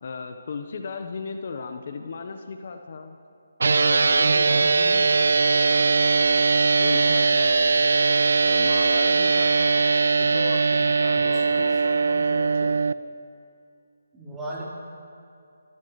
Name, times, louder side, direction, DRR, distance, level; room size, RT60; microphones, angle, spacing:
voice 1, 0.0-3.2 3.7-6.3 6.8-7.8 8.4-9.8 10.2-12.8, left 4 dB, 55° left, 6 dB, 1.0 m, -36 dB
sound 1, 3.6-12.9, right 4 dB, 65° right, 0.5 m, -20 dB
voice 2, 4.4-4.9 11.1-11.8 14.1-14.6, right 1 dB, 10° right, -8 dB, 4.2 m, -38 dB
29.0 x 15.0 x 3.2 m, 2.5 s
figure-of-eight pair, 155°, 0 cm